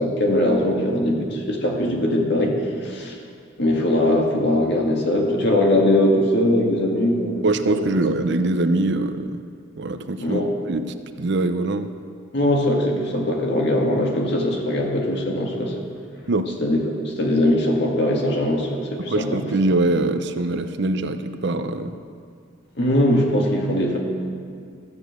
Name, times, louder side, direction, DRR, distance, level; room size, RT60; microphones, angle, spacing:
voice 1, 0.0-3.2 3.6-7.9 10.2-10.5 12.3-15.7 16.6-19.4 22.8-24.0, left 1 dB, 60° left, 0 dB, 2.0 m, -21 dB
voice 2, 7.4-9.4 9.8-10.4 10.7-10.8 11.2-11.9 16.3-16.5 19.0-21.9, right 2 dB, 60° right, 9 dB, 0.6 m, -23 dB
13.5 x 7.2 x 7.9 m, 2.3 s
head